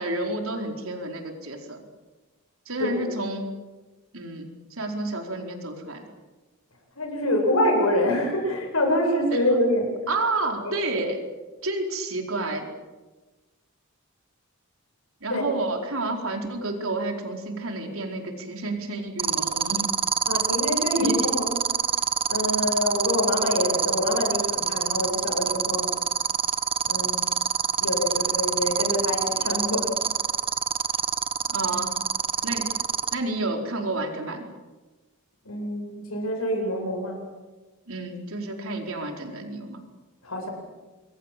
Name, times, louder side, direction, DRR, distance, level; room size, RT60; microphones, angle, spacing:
voice 1, 0.0-1.8 2.7-3.4 4.1-6.0 9.3-9.4 10.1-11.2 11.6-12.6 15.2-19.8 21.0-21.1 31.5-31.9 32.4-32.7 33.1-34.4 37.9-39.8, right 2 dB, 70° right, 3 dB, 4.6 m, -30 dB
voice 2, 7.0-9.9 10.6-10.7 15.3-15.4 20.3-21.7 22.3-25.9 26.9-27.2 27.8-29.9 35.4-37.2 40.2-40.5, left 1 dB, 75° left, 3 dB, 7.9 m, -25 dB
sound 1, 19.2-33.1, right 7 dB, 25° right, 1.1 m, -24 dB
26.5 x 22.5 x 7.7 m, 1.2 s
head